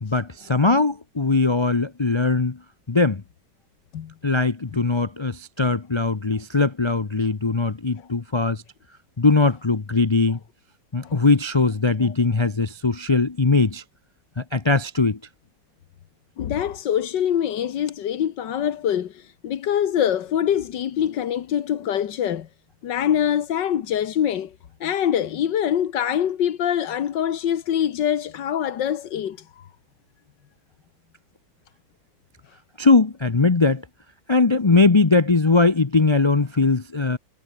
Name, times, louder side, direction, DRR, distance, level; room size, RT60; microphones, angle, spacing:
voice 1, 0.0-2.6 2.9-3.2 4.2-8.6 9.2-10.4 10.9-13.8 14.4-15.2 32.8-33.8 34.3-37.2, left 3 dB, 45° left, 0.3 m, -20 dB
voice 2, 16.4-22.5 22.8-24.5 24.8-29.7, left 9 dB, 90° left, 1.8 m, -24 dB
omnidirectional pair, 1.9 m